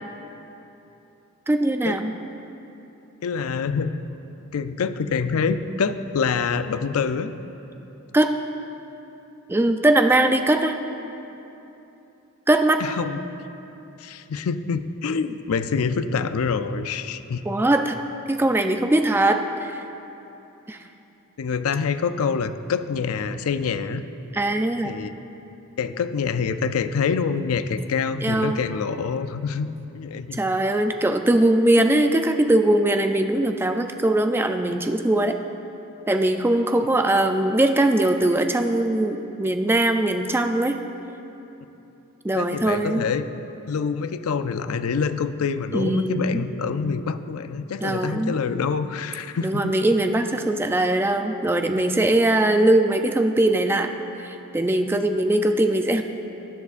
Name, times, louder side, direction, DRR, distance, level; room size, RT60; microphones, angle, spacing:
voice 1, 1.5-2.1 8.1-8.3 9.5-10.8 12.5-12.8 17.5-18.0 18.3-19.8 20.7-20.8 24.3-25.0 28.2-28.6 30.3-35.4 36.1-40.8 42.2-43.1 45.7-46.4 47.8-48.3 49.4-53.9 54.2-56.0, right 1 dB, 10° right, 6 dB, 0.3 m, -21 dB
voice 2, 3.2-4.0 4.5-7.4 12.8-13.2 14.0-17.4 21.4-24.0 24.8-25.2 25.8-30.4 42.3-43.2 43.7-49.7, left 5 dB, 70° left, 11 dB, 0.4 m, -26 dB
16.0 x 10.5 x 2.5 m, 2.9 s
head